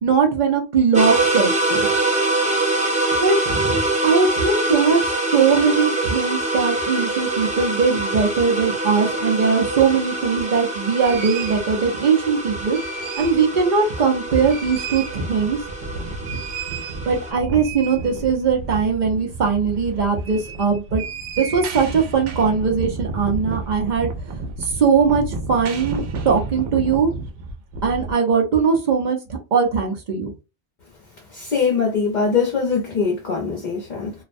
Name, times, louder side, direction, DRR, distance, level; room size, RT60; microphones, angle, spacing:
voice 1, 0.0-1.9 3.2-15.6 17.1-21.0 21.4-24.1 24.6-27.1 27.8-29.2 29.5-30.3, right 5 dB, 50° right, 0.6 m, -20 dB
sound 1, 0.9-17.3, right 2 dB, 10° right, 0.4 m, -24 dB
sound 2, 10.3-10.4 11.0-11.6 12.5-13.5 13.8-13.9 14.2-28.1, right 3 dB, 90° right, 0.9 m, -31 dB
voice 2, 31.3-34.1, left 5 dB, 50° left, 0.7 m, -22 dB
2.4 x 2.1 x 2.5 m
omnidirectional pair, 1.2 m